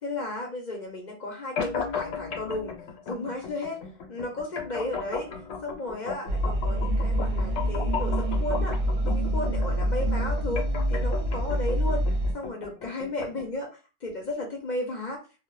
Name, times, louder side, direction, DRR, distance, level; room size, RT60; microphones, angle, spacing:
voice 1, 0.0-2.8 3.1-3.8 4.1-5.3 5.6-8.7 9.0-12.0 12.3-13.7 14.0-15.2, left 2 dB, 50° left, 0 dB, 0.6 m, -34 dB
sound 1, 1.6-13.6, left 6 dB, 75° left, 0.9 m, -36 dB
sound 2, 6.3-12.3, right 1 dB, 70° right, 0.8 m, -26 dB
2.1 x 2.0 x 2.9 m, 0.32 s
omnidirectional pair, 1.2 m